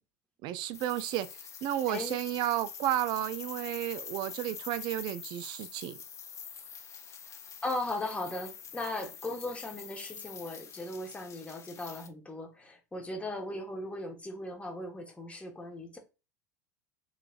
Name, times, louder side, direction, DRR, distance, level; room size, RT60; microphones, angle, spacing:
voice 1, 0.4-5.9, right 13 dB, 50° right, 0.4 m, -32 dB
sound 1, 0.7-12.1, left 7 dB, 30° left, 0.6 m, -46 dB
voice 2, 7.6-16.0, left 2 dB, 10° left, 1.2 m, -38 dB
3.9 x 3.3 x 2.5 m
hypercardioid pair, 85°, 10 cm